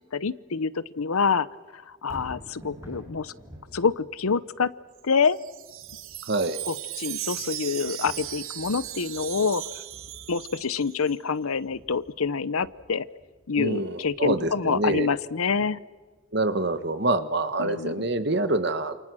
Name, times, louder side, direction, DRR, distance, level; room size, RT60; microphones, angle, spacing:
voice 1, 0.0-1.5 1.7-3.3 3.7-4.7 5.0-5.4 6.7-9.6 10.3-13.1 13.5-15.8 17.6-18.0, left 5 dB, 85° left, 17 dB, 0.8 m, -26 dB
Thunder, 2.0-16.2 16.7-16.8, equal, 15° right, 7.2 m, -50 dB
Wind chime, 5.0-11.2, right 14 dB, 75° right, 1.0 m, -37 dB
voice 2, 6.2-6.6 13.6-15.1 16.3-19.0, right 2 dB, 50° right, 11 dB, 1.4 m, -26 dB
28.5 x 28.5 x 6.3 m, 1.4 s
head